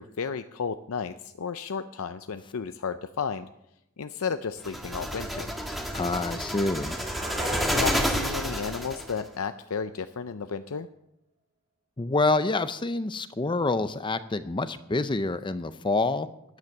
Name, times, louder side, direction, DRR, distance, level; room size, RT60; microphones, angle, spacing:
voice 1, 0.0-3.5 4.0-5.5 7.7-10.9, left 6 dB, 70° left, 10 dB, 0.5 m, -33 dB
sound 1, 4.6-9.2, equal, ahead, 1.5 m, -30 dB
voice 2, 5.9-7.0 12.0-16.3, left 3 dB, 20° left, 12 dB, 0.5 m, -27 dB
sound 2, 6.5-9.6, right 1 dB, 25° right, 2.6 m, -39 dB
13.0 x 9.5 x 7.1 m, 0.84 s
head